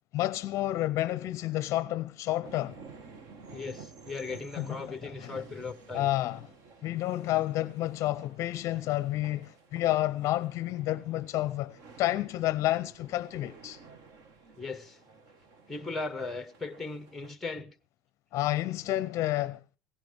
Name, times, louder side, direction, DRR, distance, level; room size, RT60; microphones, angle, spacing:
voice 1, 0.1-2.8 4.6-5.3 5.9-6.4 6.8-13.8 18.3-19.6, left 15 dB, 45° left, 0.6 m, -30 dB
sound 1, 2.4-17.3, right 5 dB, 50° right, 1.6 m, -53 dB
voice 2, 3.5-6.1 14.6-15.0 15.7-17.7, left 3 dB, ahead, 0.9 m, -38 dB
16.5 x 14.5 x 3.5 m
cardioid pair, 165°, 7 cm